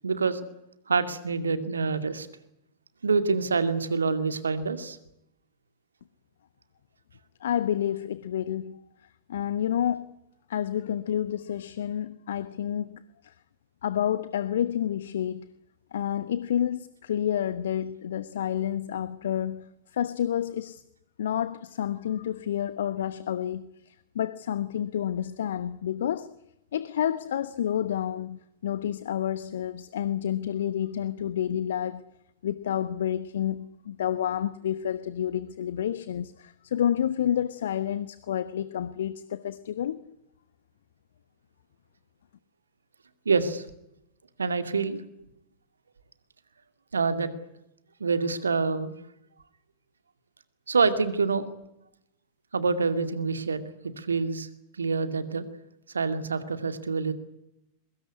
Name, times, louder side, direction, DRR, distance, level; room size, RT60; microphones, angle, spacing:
voice 1, 0.0-0.4 0.9-2.3 3.0-5.0 43.3-43.6 44.4-45.0 46.9-47.3 48.0-48.9 50.7-51.5 52.5-53.7 54.0-54.5 54.8-55.4 55.9-57.1, right 4 dB, 75° right, 2.4 m, -26 dB
voice 2, 7.4-8.8 9.3-10.1 10.5-13.3 13.8-15.5 15.9-20.8 21.2-26.3 26.7-32.0 32.4-40.0, left 10 dB, 60° left, 1.1 m, -29 dB
24.0 x 21.5 x 9.7 m
figure-of-eight pair, 90°, 0 cm